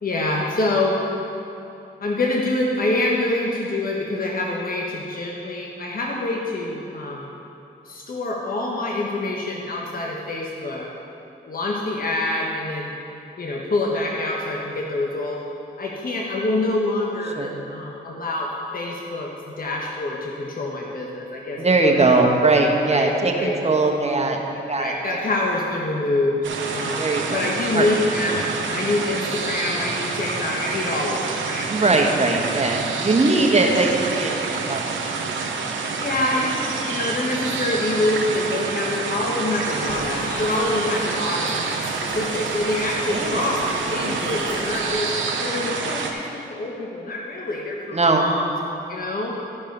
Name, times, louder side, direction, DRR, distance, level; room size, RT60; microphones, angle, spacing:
voice 1, 0.0-1.0 2.0-7.3 7.8-10.9 11.5-12.9 13.4-15.4 15.8-19.3 19.6-21.9 22.9-23.5 24.7-26.4 26.7-28.5 28.7-32.2 33.5-33.7 36.0-41.6 42.0-43.6 43.9-45.1 45.4-48.4 48.9-49.4, left 2 dB, 50° left, -2 dB, 1.4 m, -26 dB
voice 2, 21.6-25.2 27.0-27.9 31.7-35.0 43.1-43.5 47.9-48.2, right 3 dB, 35° right, 1 dB, 1.5 m, -20 dB
sound 1, 26.4-46.1, right 4 dB, 75° right, 1.0 m, -28 dB
sound 2, 39.6-44.9, left 2 dB, 80° left, 1.4 m, -36 dB
13.5 x 5.3 x 5.3 m, 2.9 s
cardioid pair, 55°, 20 cm